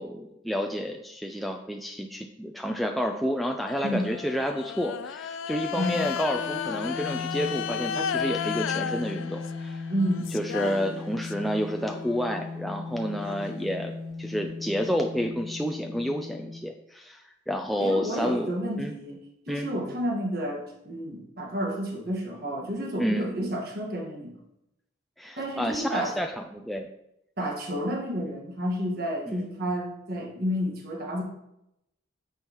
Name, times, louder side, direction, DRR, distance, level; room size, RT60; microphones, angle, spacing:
voice 1, 0.0-9.9 10.3-13.9 14.2-17.2 17.5-18.5 18.8-18.9 19.5-19.7 23.0-23.3 25.2-26.9 29.3-29.5, equal, ahead, 2 dB, 0.3 m, -30 dB
sound 1, 3.7-11.5 11.9-14.5, left 7 dB, 80° left, 0.4 m, -34 dB
voice 2, 5.7-6.1 9.9-10.3 17.8-19.2 19.5-24.4 25.4-26.2 27.4-31.2, equal, 50° right, -1 dB, 1.6 m, -30 dB
sound 2, 6.3-16.6, left 4 dB, 65° left, 1.3 m, -37 dB
8.8 x 6.3 x 3.0 m, 0.84 s
head